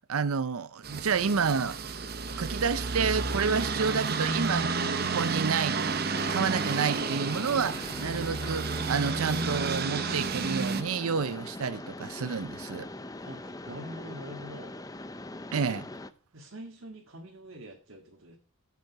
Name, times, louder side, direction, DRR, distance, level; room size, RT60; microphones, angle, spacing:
voice 1, 0.1-1.8 2.4-4.7 5.1-5.8 6.3-12.9 15.5-15.9, right 5 dB, 90° right, 0.6 m, -29 dB
sound 1, 0.8-10.8, right 4 dB, 45° right, 0.9 m, -31 dB
Mechanisms, 6.1-16.1, left 2 dB, 15° left, 0.6 m, -42 dB
voice 2, 13.2-14.8 16.3-18.4, equal, 70° right, 1.9 m, -44 dB
13.0 x 8.3 x 4.7 m
head